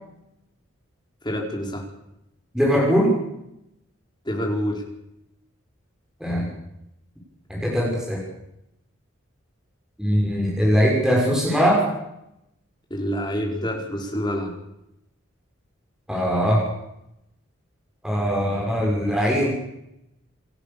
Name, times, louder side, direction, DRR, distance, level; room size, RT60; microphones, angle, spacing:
voice 1, 1.2-1.8 4.2-4.8 12.9-14.5, equal, 20° left, 0 dB, 4.9 m, -27 dB
voice 2, 2.5-3.2 6.2-6.5 7.5-8.2 10.0-11.9 16.1-16.7 18.0-19.5, equal, 5° right, -3 dB, 6.0 m, -21 dB
28.0 x 14.0 x 7.1 m, 0.82 s
head